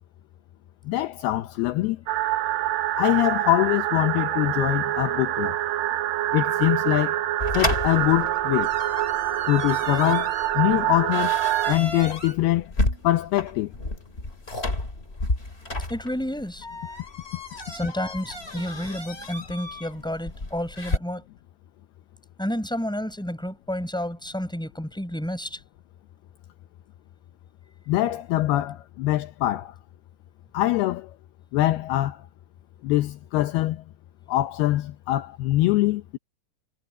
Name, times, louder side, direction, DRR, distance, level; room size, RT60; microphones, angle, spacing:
voice 1, 0.9-2.0 3.0-5.5 6.3-7.2 7.5-8.7 9.5-11.4 11.7-12.7 13.0-13.7 27.9-29.7 30.5-31.1 31.5-32.2 32.8-33.8 34.3-36.2, left 16 dB, 80° left, 2.6 m, -23 dB
sound 1, 2.1-11.8, right 14 dB, 70° right, 2.4 m, -26 dB
sound 2, 7.4-21.0, left 2 dB, 15° left, 2.9 m, -32 dB
voice 2, 15.9-16.7 17.7-21.2 22.4-25.6, equal, ahead, 6.1 m, -30 dB
omnidirectional pair, 4.8 m